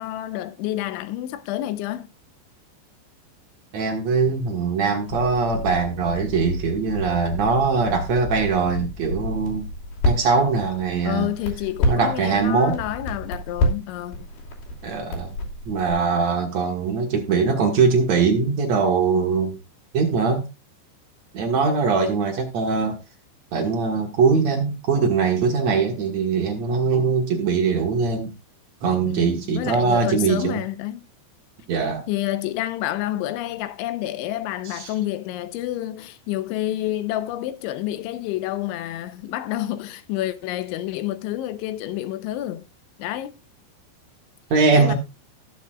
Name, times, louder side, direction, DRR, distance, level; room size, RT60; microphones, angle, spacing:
voice 1, 0.0-2.1 11.1-14.3 29.1-31.0 32.1-42.7 43.0-43.4 44.7-44.9, left 14 dB, 80° left, 3.1 m, -29 dB
voice 2, 3.7-9.7 10.0-11.3 11.9-12.8 14.8-15.3 15.7-19.5 19.9-20.5 21.3-23.0 23.5-28.3 28.8-30.6 31.7-32.1 34.7-34.9 44.5-44.9, right 4 dB, 60° right, 1.8 m, -21 dB
Crackle, 5.1-15.9, left 1 dB, 55° left, 4.3 m, -29 dB
19.0 x 7.1 x 2.4 m
omnidirectional pair, 5.4 m